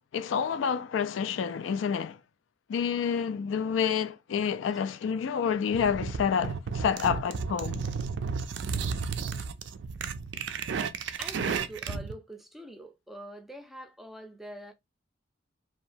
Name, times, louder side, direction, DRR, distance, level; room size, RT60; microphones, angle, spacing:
voice 1, 0.1-2.2 2.7-7.8, left 7 dB, 80° left, 0.3 m, -28 dB
sound 1, 5.7-12.1, right 5 dB, 65° right, 0.3 m, -33 dB
voice 2, 11.2-14.7, right 1 dB, ahead, 0.4 m, -44 dB
2.8 x 2.2 x 2.5 m
head